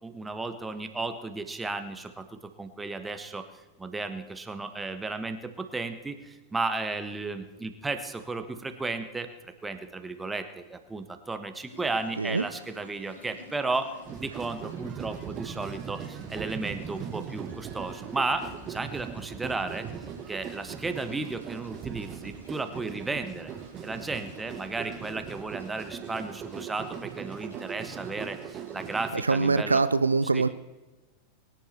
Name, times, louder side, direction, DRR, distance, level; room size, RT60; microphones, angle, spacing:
voice 1, 0.0-3.5 3.8-9.3 9.6-13.9 14.2-19.9 20.3-23.5 23.8-29.8 30.3-30.4, right 3 dB, 10° right, 8 dB, 1.4 m, -34 dB
sound 1, 11.7-29.2, left 1 dB, 75° left, 5.9 m, -51 dB
sound 2, 14.0-29.2, right 8 dB, 30° right, 1.0 m, -40 dB
voice 2, 29.1-30.5, right 4 dB, 80° right, 14 dB, 0.4 m, -24 dB
23.5 x 10.5 x 4.4 m, 1.1 s
figure-of-eight pair, 90°, 0 cm